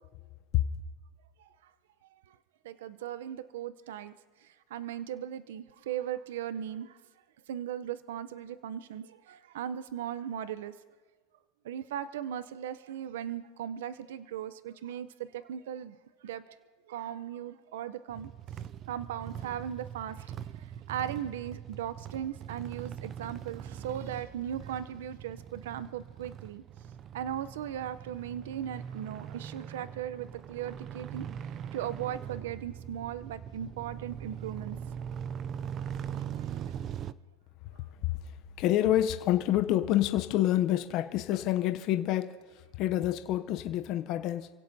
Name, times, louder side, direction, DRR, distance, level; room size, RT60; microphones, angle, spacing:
voice 1, 1.4-1.7 2.3-2.4 2.6-4.1 4.4-7.0 7.5-10.7 11.6-16.0 16.2-16.6 16.9-18.3 18.9-20.3 20.6-26.6 27.1-31.3 31.7-34.8 36.0-36.8, right 10 dB, 80° right, 0.6 m, -38 dB
sound 1, 18.1-37.1, right 9 dB, 25° right, 0.4 m, -41 dB
voice 2, 38.1-42.4 42.8-44.5, left 13 dB, 40° left, 0.6 m, -27 dB
29.0 x 16.5 x 2.7 m
supercardioid pair, 155°, 0 cm